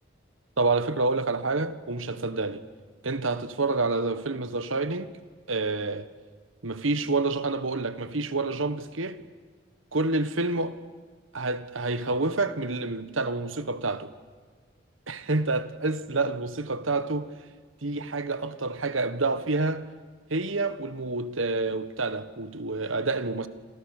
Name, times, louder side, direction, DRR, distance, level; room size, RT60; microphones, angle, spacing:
voice 1, 0.6-2.6 3.0-5.1 5.5-6.1 6.6-9.2 9.9-10.8 11.3-14.1 15.1-17.4 17.8-19.9 20.3-23.5, right 3 dB, 85° right, 1.4 m, -28 dB
28.5 x 27.5 x 6.7 m
head